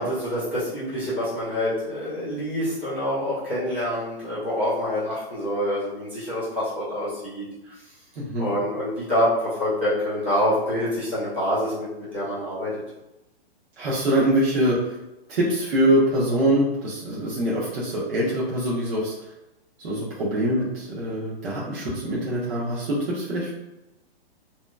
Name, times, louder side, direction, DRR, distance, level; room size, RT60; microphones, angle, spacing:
voice 1, 0.0-7.5 8.4-11.9 12.1-12.7, equal, 10° right, -10 dB, 0.3 m, -26 dB
voice 2, 8.2-8.5 13.8-15.0 15.3-19.1 19.8-23.5, right 1 dB, 70° right, -7 dB, 1.0 m, -24 dB
2.8 x 2.2 x 2.3 m, 0.97 s
hypercardioid pair, 170°, 31 cm